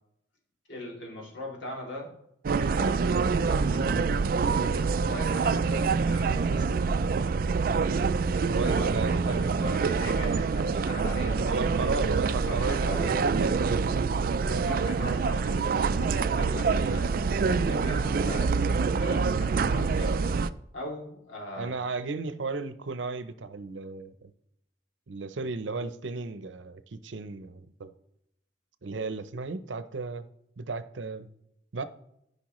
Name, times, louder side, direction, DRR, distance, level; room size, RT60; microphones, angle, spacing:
voice 1, 0.7-2.1 2.5-4.0 4.4-6.7 8.5-11.9 12.2-13.2 14.3-20.2 20.7-21.8, left 1 dB, 85° left, -2 dB, 2.7 m, -40 dB
sound 1, 2.4-20.5, right 4 dB, 50° right, 0.3 m, -26 dB
voice 2, 8.5-9.4 10.0-10.1 11.5-14.1 14.4-14.9 21.6-24.3 25.1-27.9 28.8-30.3 30.6-31.3 31.7-31.8, right 4 dB, 85° right, 12 dB, 0.7 m, -34 dB
14.0 x 5.5 x 3.1 m, 0.78 s
head